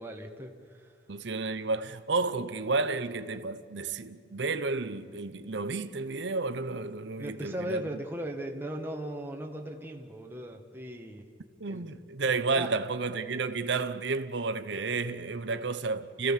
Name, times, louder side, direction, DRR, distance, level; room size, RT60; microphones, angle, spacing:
voice 1, 0.0-0.9 7.2-11.3 11.7-11.9 12.5-12.7 15.5-15.6, right 1 dB, 10° right, 1.5 m, -38 dB
voice 2, 1.1-7.8 11.6-16.3, right 3 dB, 65° right, 0.8 m, -31 dB
30.0 x 15.5 x 7.4 m
head